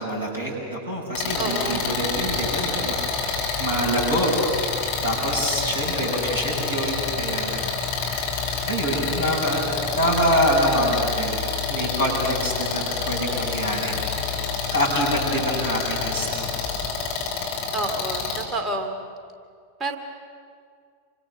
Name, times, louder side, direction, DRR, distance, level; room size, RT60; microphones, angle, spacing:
voice 1, 0.0-3.0 3.2-4.3 5.0-7.5 8.0-8.4 8.7-9.7 9.9-14.0 14.7-16.5, equal, 85° left, -3 dB, 7.6 m, -25 dB
sound 1, 1.1-18.4, left 6 dB, 45° left, 5.5 m, -28 dB
voice 2, 1.4-1.9 17.7-18.9 19.8-20.0, right 2 dB, 20° right, 4 dB, 2.6 m, -29 dB
Engine, 1.7-17.4, left 7 dB, 20° left, 2.2 m, -36 dB
28.5 x 25.0 x 6.7 m, 2.2 s
figure-of-eight pair, 90°, 0 cm